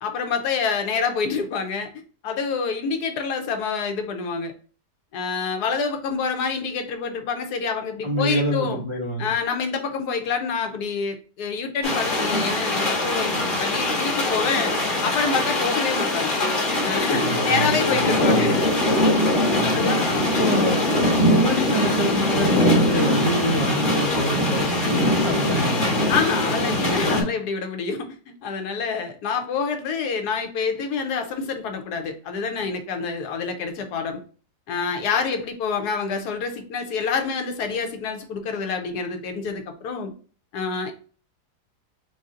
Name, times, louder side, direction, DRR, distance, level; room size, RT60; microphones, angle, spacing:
voice 1, 0.0-1.9 2.2-4.5 5.1-8.8 9.2-14.7 15.0-16.4 16.8-18.7 19.6-20.4 26.1-34.2 34.7-40.1 40.5-40.9, left 5 dB, 75° left, 5 dB, 1.2 m, -27 dB
voice 2, 8.0-9.3 17.1-18.6 19.5-19.8 20.2-25.9, right 1 dB, 35° right, -3 dB, 0.5 m, -27 dB
sound 1, 11.8-27.2, left 1 dB, 35° left, 1.2 m, -22 dB
4.0 x 2.6 x 3.6 m, 0.39 s
omnidirectional pair, 1.8 m